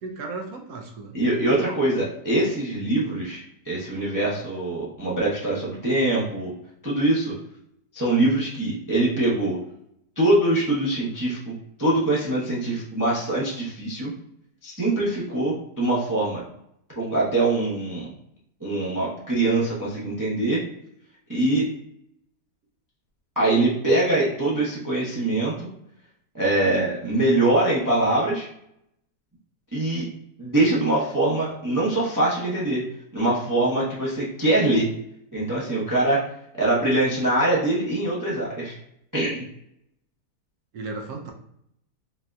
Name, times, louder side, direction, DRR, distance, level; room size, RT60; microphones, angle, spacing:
voice 1, 0.0-1.2 40.7-41.3, right 3 dB, 70° right, 2 dB, 1.0 m, -35 dB
voice 2, 1.1-6.5 6.8-7.3 7.9-9.6 10.2-11.5 11.8-14.1 14.6-16.4 17.0-18.1 18.6-20.6 21.3-21.7 23.4-25.7 26.3-28.5 29.7-30.0 30.4-32.8 33.1-34.9 35.3-36.2 36.5-38.8 39.1-39.4, right 2 dB, 25° right, -7 dB, 0.4 m, -23 dB
4.1 x 2.6 x 2.2 m, 0.75 s
omnidirectional pair, 1.8 m